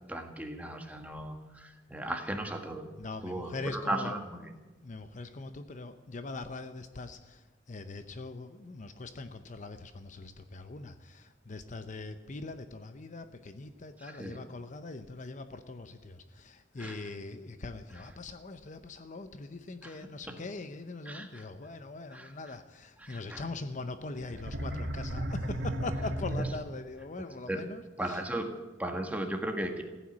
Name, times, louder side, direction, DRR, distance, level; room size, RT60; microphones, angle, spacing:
voice 1, 0.1-2.9 3.2-4.5 14.0-14.4 16.8-17.0 17.9-18.0 19.8-20.0 20.3-20.4 21.1-21.5 22.1-22.5 23.0-23.4 26.4-26.5 27.5-27.7 28.0-29.8, right 1 dB, 10° right, 4 dB, 1.7 m, -37 dB
voice 2, 3.0-4.2 4.8-28.2, left 3 dB, 45° left, 9 dB, 0.7 m, -42 dB
sound 1, 24.2-27.0, right 1 dB, 80° right, 1.9 m, -34 dB
15.5 x 9.2 x 9.5 m, 1.2 s
head